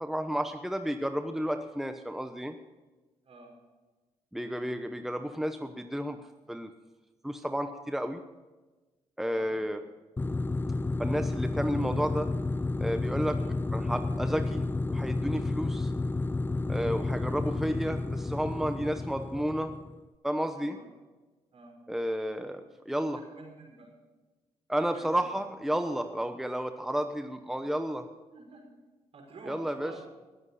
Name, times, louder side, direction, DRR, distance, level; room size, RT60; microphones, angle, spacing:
voice 1, 0.0-2.6 4.3-6.2 6.5-6.7 7.2-8.2 9.2-9.8 11.0-12.3 12.8-13.4 13.7-15.9 16.7-19.7 20.2-20.8 21.9-23.2 24.7-28.1 29.4-29.9, equal, 5° right, 7 dB, 1.0 m, -32 dB
voice 2, 9.2-9.6 13.4-13.5 16.6-17.0 18.8-18.9 20.5-20.8 21.5-21.7 23.1-23.9 24.9-25.3 26.2-26.4 28.3-28.6 29.1-30.0, right 3 dB, 60° right, 0 dB, 6.0 m, -50 dB
sound 1, 10.2-20.0, left 2 dB, 15° left, 0.4 m, -31 dB
19.5 x 8.0 x 5.7 m, 1.2 s
supercardioid pair, 65°, 12 cm